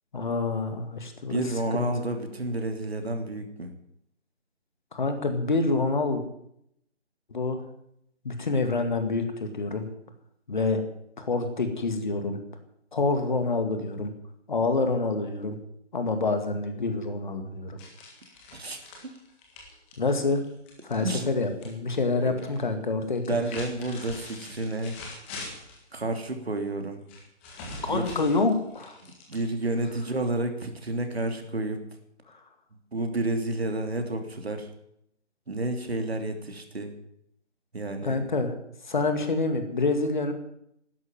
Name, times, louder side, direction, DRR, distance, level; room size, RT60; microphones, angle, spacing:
voice 1, 0.1-1.4 1.7-2.1 4.9-6.2 7.3-7.6 8.2-9.9 10.5-10.9 11.2-12.4 12.9-14.1 14.5-15.6 15.9-17.8 20.0-20.4 20.8-23.2 27.8-29.0 38.0-38.5 38.9-40.3, left 3 dB, 40° left, 7 dB, 2.3 m, -27 dB
voice 2, 1.3-3.7 18.5-19.1 21.0-21.3 22.2-22.3 23.2-25.0 25.9-27.0 27.8-28.2 29.0-31.8 32.9-34.7 35.5-36.9 37.7-38.2, right 2 dB, 60° right, 6 dB, 3.1 m, -30 dB
sound 1, 17.8-21.7 22.0-22.6 23.1-25.8 27.1-29.8, left 2 dB, 10° left, 1.7 m, -43 dB
12.5 x 11.5 x 9.1 m, 0.74 s
figure-of-eight pair, 155°, 35 cm